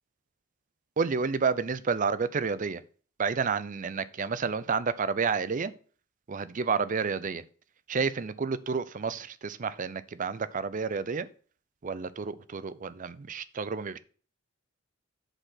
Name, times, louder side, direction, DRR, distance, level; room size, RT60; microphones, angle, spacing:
voice 1, 1.0-2.8 3.2-5.7 6.3-7.4 7.9-11.3 11.8-14.0, right 5 dB, 40° right, 15 dB, 0.5 m, -30 dB
7.9 x 4.3 x 5.6 m, 0.43 s
head